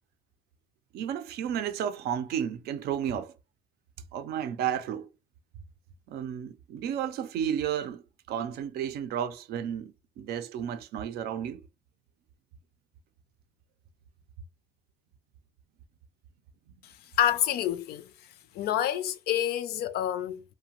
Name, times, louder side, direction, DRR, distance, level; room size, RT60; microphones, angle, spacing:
voice 1, 0.9-3.3 4.1-5.1 6.1-8.0 8.3-11.6 16.7-16.8, right 9 dB, 85° right, 0.4 m, -32 dB
voice 2, 17.2-18.1 18.5-20.4, left 11 dB, 80° left, 0.4 m, -27 dB
2.7 x 2.1 x 2.9 m
cardioid pair, 125°, 16 cm